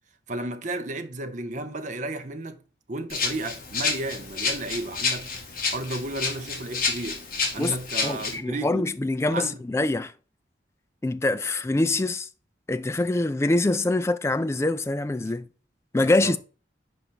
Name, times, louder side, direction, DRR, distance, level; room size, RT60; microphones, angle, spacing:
voice 1, 0.3-2.6 2.9-5.3 5.7-7.2 7.5-8.9 9.3-9.6 16.0-16.4, right 2 dB, 40° right, 0.7 m, -33 dB
Rattle (instrument), 3.1-8.3, left 4 dB, 50° left, 1.7 m, -29 dB
voice 2, 8.0-10.1 11.0-12.3 12.7-15.5 15.9-16.4, left 2 dB, 15° left, 0.3 m, -24 dB
5.4 x 4.9 x 4.5 m
head